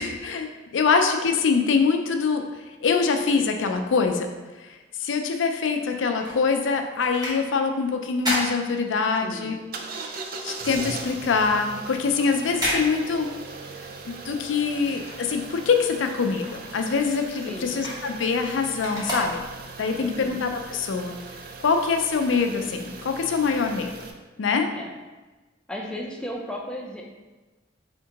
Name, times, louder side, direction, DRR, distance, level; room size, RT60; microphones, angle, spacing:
voice 1, 0.0-2.4 2.8-4.3 5.0-9.6 10.4-13.3 14.1-19.4 19.8-21.2 21.6-24.0 24.4-24.7, left 5 dB, 80° left, 5 dB, 0.4 m, -24 dB
sound 1, 5.7-9.4 9.8-15.8 16.1-19.9 20.4-20.5, equal, 20° right, 1.2 m, -34 dB
voice 2, 9.2-9.6 17.5-17.8 20.0-20.4 24.7-24.9 25.7-27.0, left 1 dB, 5° left, -1 dB, 0.5 m, -35 dB
sound 2, 9.7-24.1, right 4 dB, 50° right, 0.4 m, -39 dB
4.2 x 3.6 x 2.8 m, 1.2 s
head